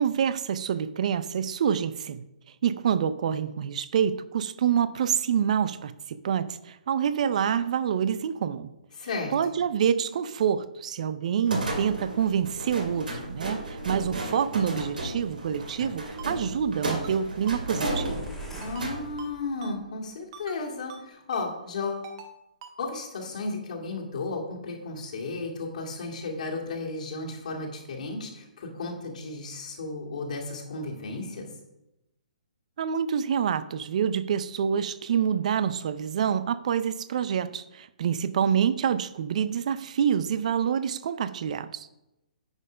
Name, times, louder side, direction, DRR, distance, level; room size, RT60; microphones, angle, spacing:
voice 1, 0.0-2.2 2.6-8.7 9.3-18.2 32.8-41.9, right 8 dB, 55° right, 15 dB, 0.5 m, -27 dB
voice 2, 8.9-9.3 18.6-22.1 22.8-31.5, left 3 dB, 60° left, 0 dB, 2.3 m, -34 dB
sound 1, 11.5-19.1, right 1 dB, 80° right, 2.3 m, -34 dB
Ringtone, 16.2-16.3 16.9-17.2 17.5-17.6 17.9-18.0 18.6-18.9 19.2-19.3 19.6-19.7 20.3-20.6 20.9-21.0 21.3-21.5 22.0-22.3 22.6-22.7, right 6 dB, 35° right, 1.0 m, -44 dB
sound 2, 18.0-19.9, left 1 dB, 5° left, 1.5 m, -42 dB
9.7 x 4.3 x 5.0 m, 0.91 s
hypercardioid pair, 145°, 5 cm